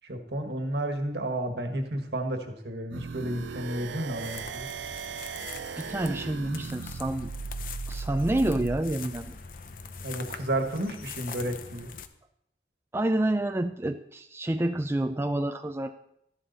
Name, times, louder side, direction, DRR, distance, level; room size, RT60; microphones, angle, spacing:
voice 1, 0.0-4.7 10.0-11.9, right 1 dB, 70° right, 5 dB, 1.6 m, -32 dB
sound 1, 2.9-8.8, right 5 dB, 90° right, 0.5 m, -37 dB
sound 2, 4.1-12.1, left 6 dB, 50° left, 0.7 m, -43 dB
voice 2, 5.8-7.3 7.9-9.4 12.9-15.9, right 1 dB, 15° right, 7 dB, 0.4 m, -28 dB
13.0 x 11.0 x 4.1 m, 0.75 s
head